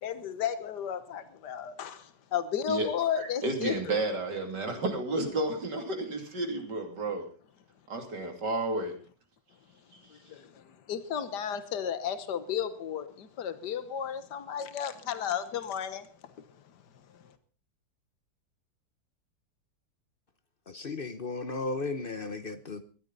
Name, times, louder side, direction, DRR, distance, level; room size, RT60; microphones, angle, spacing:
voice 1, 0.0-4.0 10.1-16.3 17.1-17.3, left 8 dB, 70° left, 1.8 m, -34 dB
voice 2, 3.2-7.3 7.9-8.9, right 2 dB, 70° right, 3.4 m, -31 dB
voice 3, 20.7-22.8, left 3 dB, 40° left, 0.9 m, -35 dB
19.5 x 13.0 x 4.0 m
omnidirectional pair, 1.9 m